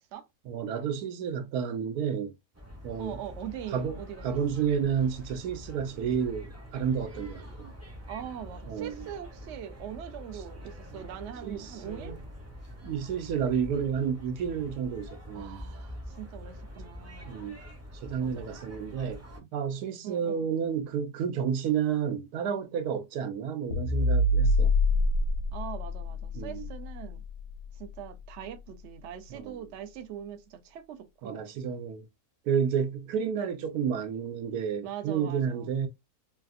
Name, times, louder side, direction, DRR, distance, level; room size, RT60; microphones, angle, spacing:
voice 1, 0.5-2.3 2.8-3.2 3.7-7.7 8.7-9.0 11.4-12.2 12.8-15.6 17.3-17.6 17.9-19.2 19.5-24.7 26.3-26.7 29.3-29.6 31.2-32.0 32.4-35.9, right 7 dB, 85° right, 1.2 m, -31 dB
sound 1, 2.5-19.4, equal, 15° right, 0.5 m, -45 dB
voice 2, 3.0-4.2 8.1-12.2 15.3-17.5 18.2-18.6 20.0-20.4 25.5-27.2 27.7-31.5 34.8-35.7, right 9 dB, 65° right, 0.7 m, -42 dB
sound 2, 23.7-28.2, left 1 dB, 75° left, 1.0 m, -26 dB
3.3 x 2.4 x 2.4 m
omnidirectional pair, 1.6 m